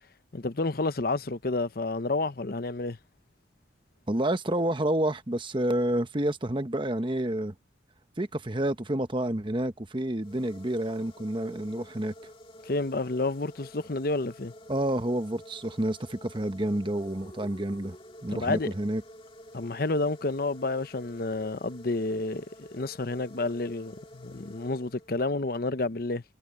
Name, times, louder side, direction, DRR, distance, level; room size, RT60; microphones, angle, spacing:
voice 1, 0.3-3.0 12.6-14.5 18.3-18.7 19.5-26.2, left 2 dB, 50° left, 0.8 m, -30 dB
voice 2, 4.1-7.5 8.2-12.1 14.7-18.0 18.2-19.0, right 1 dB, 25° right, 1.1 m, -29 dB
sound 1, 10.2-25.4, left 1 dB, 30° left, 1.8 m, -50 dB
head